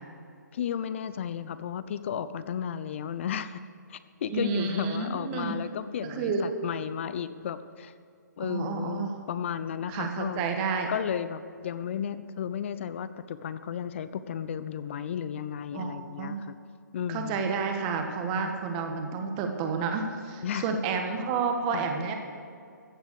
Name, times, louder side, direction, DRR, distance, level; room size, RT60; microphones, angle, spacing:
voice 1, 0.5-3.6 3.9-7.9 8.4-10.4 10.9-16.6 16.9-17.5 18.4-18.6 20.4-20.8 21.7-21.9, left 8 dB, 40° left, 13 dB, 0.6 m, -34 dB
voice 2, 4.3-5.6 6.0-6.4 8.4-9.1 9.9-10.9 15.7-16.4 17.1-22.1, right 5 dB, 25° right, 4 dB, 1.6 m, -30 dB
15.0 x 7.9 x 6.7 m, 2.4 s
figure-of-eight pair, 145°, 10 cm